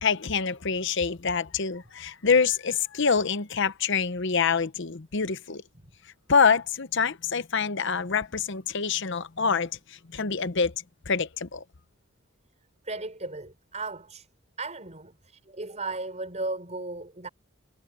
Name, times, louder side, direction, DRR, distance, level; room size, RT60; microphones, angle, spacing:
voice 1, 0.0-5.6 6.3-11.6, left 5 dB, 60° left, 0.9 m, -26 dB
voice 2, 12.8-14.3 14.6-17.3, right 3 dB, 35° right, 5.8 m, -35 dB
head